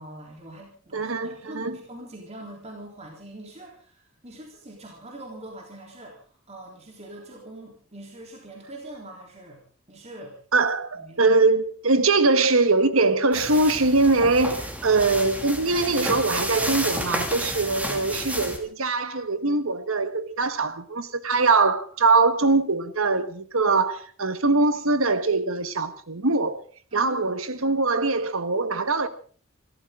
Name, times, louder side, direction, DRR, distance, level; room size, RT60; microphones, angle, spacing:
voice 1, 0.0-9.6 9.9-10.4 10.9-11.3 26.9-27.2 27.5-27.8, right 1 dB, 30° right, 3.7 m, -43 dB
voice 2, 0.9-1.8 10.5-26.6 26.9-29.1, right 3 dB, 85° right, 1.5 m, -22 dB
sound 1, 13.3-18.6, equal, 5° right, 2.5 m, -31 dB
26.5 x 14.0 x 3.8 m
head